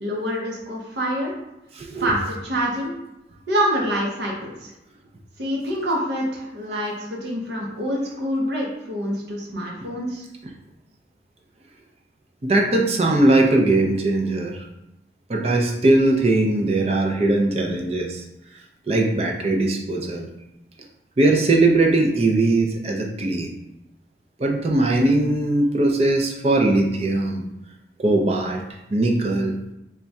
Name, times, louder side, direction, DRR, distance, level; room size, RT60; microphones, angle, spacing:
voice 1, 0.0-1.3 2.0-2.9 3.5-4.7 5.4-10.2, equal, 70° right, -2 dB, 0.7 m, -26 dB
voice 2, 1.8-2.1 12.4-14.6 15.3-18.2 18.9-20.3 21.2-23.6 24.4-27.4 28.0-28.6 28.9-29.6, right 2 dB, 35° right, 1 dB, 0.5 m, -20 dB
3.4 x 2.2 x 4.0 m, 0.89 s
head